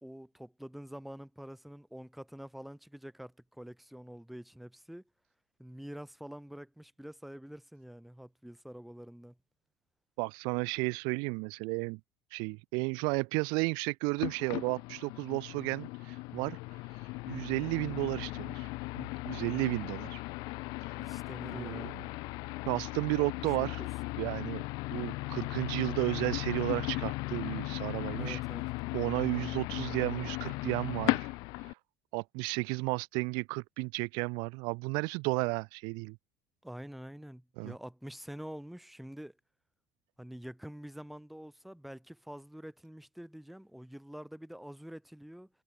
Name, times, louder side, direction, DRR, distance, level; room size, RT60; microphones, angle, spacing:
voice 1, 0.0-5.0 5.6-9.4 21.0-22.0 23.2-23.9 28.2-28.6 36.6-39.4 40.2-45.5, equal, ahead, 7.5 m, -46 dB
voice 2, 10.2-12.0 12.3-16.6 17.3-18.7 19.0-20.2 21.5-21.8 22.7-23.8 24.2-24.6 24.9-28.4 28.9-31.3 31.6-31.8 32.1-36.2 37.6-37.7, right 33 dB, 75° right, 1.6 m, -33 dB
sound 1, 14.2-31.7, left 24 dB, 65° left, 0.9 m, -37 dB
cardioid pair, 165°, 7 cm